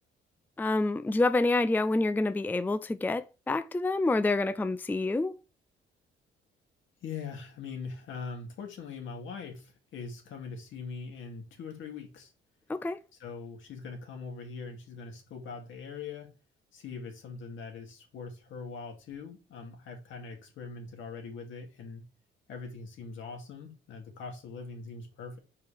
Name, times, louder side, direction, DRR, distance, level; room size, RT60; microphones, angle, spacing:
voice 1, 0.6-5.4 12.7-13.0, left 2 dB, 10° left, 0.4 m, -27 dB
voice 2, 7.0-12.3 13.2-16.3 16.7-22.0 22.5-25.4, left 5 dB, 75° left, 2.4 m, -42 dB
5.1 x 4.8 x 5.0 m
cardioid pair, 90°, 20 cm